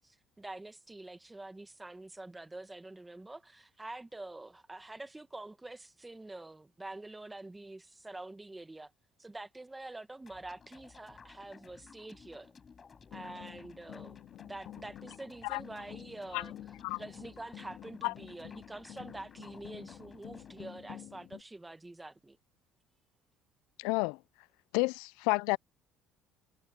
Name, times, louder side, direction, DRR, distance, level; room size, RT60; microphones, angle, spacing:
voice 1, 0.0-8.9 9.2-12.5 13.1-14.2 14.4-22.4, right 2 dB, 10° right, 1.6 m, -46 dB
sound 1, 10.2-20.7, left 5 dB, 30° left, 7.5 m, -57 dB
sound 2, 13.1-21.4, left 13 dB, 65° left, 2.1 m, -50 dB
voice 2, 23.8-24.2 24.7-25.6, left 27 dB, 90° left, 0.3 m, -30 dB
cardioid pair, 105°, 0 cm